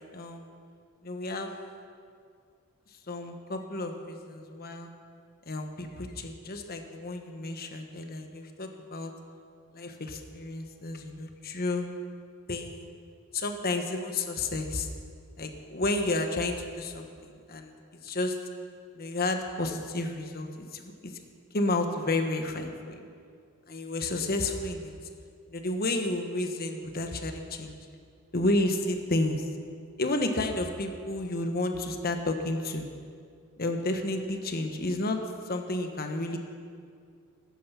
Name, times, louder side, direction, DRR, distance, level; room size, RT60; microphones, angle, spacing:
voice 1, 0.1-0.5 1.0-1.5 3.1-4.9 5.5-9.1 9.7-11.9 12.5-12.9 13.3-14.9 15.4-17.7 18.0-18.4 18.9-21.2 21.5-23.0 23.7-24.9 25.5-27.8 28.3-29.5 30.0-32.9 33.6-35.2 35.5-36.4, left 2 dB, 45° left, 5 dB, 1.2 m, -31 dB
15.5 x 12.5 x 5.8 m, 2.2 s
head